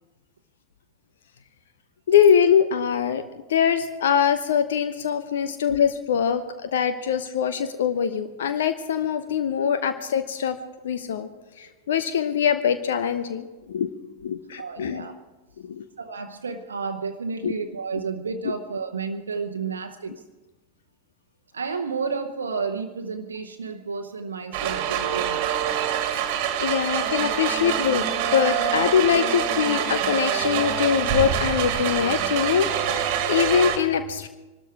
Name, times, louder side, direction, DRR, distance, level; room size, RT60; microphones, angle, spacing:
voice 1, 2.1-3.2 3.5-10.6 10.8-11.3 11.6-13.9 14.2-15.0 15.6-15.8 17.4-17.5 26.6-28.0 28.3-34.3, left 8 dB, 60° left, 10 dB, 0.8 m, -23 dB
voice 2, 14.6-15.1 16.0-20.2 21.5-25.5, right 5 dB, 70° right, 5 dB, 0.9 m, -31 dB
sound 1, 24.5-33.8, right 9 dB, 45° right, 1.7 m, -25 dB
23.5 x 13.0 x 4.7 m, 1.2 s
figure-of-eight pair, 90°, 0 cm